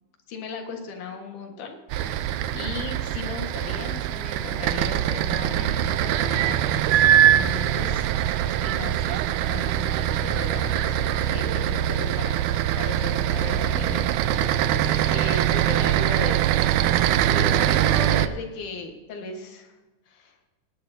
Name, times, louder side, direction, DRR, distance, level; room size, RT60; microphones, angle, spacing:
voice 1, 0.3-2.3 2.5-12.4 12.8-16.6 17.3-19.7 20.1-20.4, left 4 dB, 80° left, 3 dB, 3.1 m, -37 dB
sound 1, 1.9-18.3, right 11 dB, 85° right, 2.0 m, -23 dB
19.0 x 10.5 x 2.8 m, 1.2 s
omnidirectional pair, 3.6 m